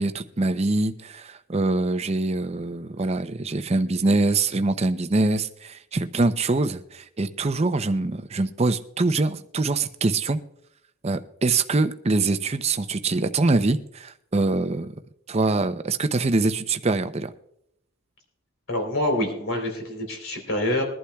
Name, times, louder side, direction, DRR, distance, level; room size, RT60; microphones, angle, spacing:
voice 1, 0.0-10.4 11.0-14.9 15.3-17.3, right 3 dB, 30° right, 10 dB, 0.6 m, -24 dB
voice 2, 18.7-20.8, left 1 dB, 65° left, 3 dB, 3.6 m, -26 dB
22.0 x 11.5 x 2.3 m, 0.77 s
head